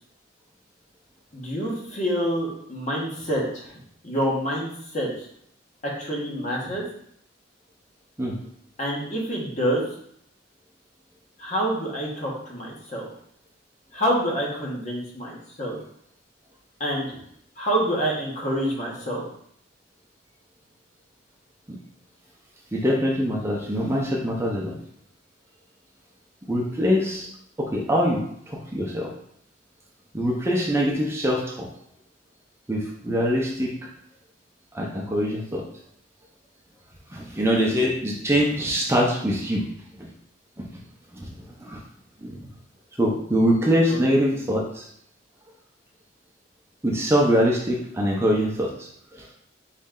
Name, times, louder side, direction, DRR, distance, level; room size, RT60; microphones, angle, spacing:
voice 1, 1.3-3.7 4.0-5.1 6.0-6.9 8.8-9.9 11.4-13.1 13.9-15.8 16.8-17.2 17.6-19.2 43.9-44.0 44.3-44.4, equal, 40° left, -3 dB, 1.3 m, -27 dB
voice 2, 22.7-24.7 26.5-27.3 27.6-29.1 30.1-31.7 32.7-33.7 34.7-35.6 37.1-39.6 40.0-40.1 40.6-40.7 41.1-41.8 42.2-42.4 43.0-44.8 46.8-49.3, equal, 15° right, -2 dB, 0.6 m, -23 dB
4.1 x 3.3 x 3.8 m, 0.69 s
head